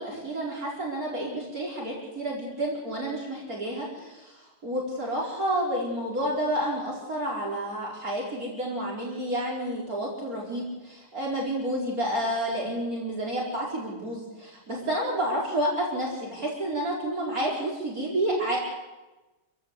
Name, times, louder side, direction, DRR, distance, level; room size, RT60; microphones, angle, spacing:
voice 1, 0.0-18.6, right 1 dB, 40° right, -2 dB, 5.1 m, -30 dB
28.0 x 16.0 x 8.2 m, 1.1 s
omnidirectional pair, 2.4 m